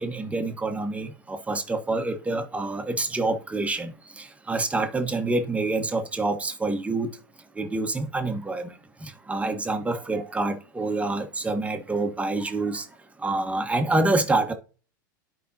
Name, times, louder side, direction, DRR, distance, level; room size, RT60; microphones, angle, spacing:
voice 1, 0.0-7.1 7.6-8.7 9.0-12.9 13.2-14.5, right 2 dB, 10° right, 1.3 m, -27 dB
11.5 x 5.1 x 2.8 m
hypercardioid pair, 95°, 11 cm